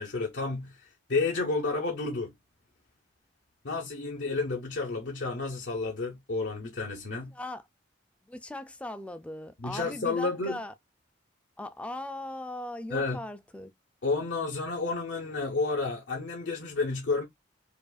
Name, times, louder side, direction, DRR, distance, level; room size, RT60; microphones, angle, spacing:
voice 1, 0.0-2.3 3.6-7.3 9.6-10.6 12.9-13.2 14.0-17.2, left 3 dB, 70° left, 0.8 m, -31 dB
voice 2, 7.3-7.6 8.2-10.7 11.6-13.7, left 1 dB, 5° left, 0.3 m, -39 dB
4.8 x 2.5 x 2.3 m
head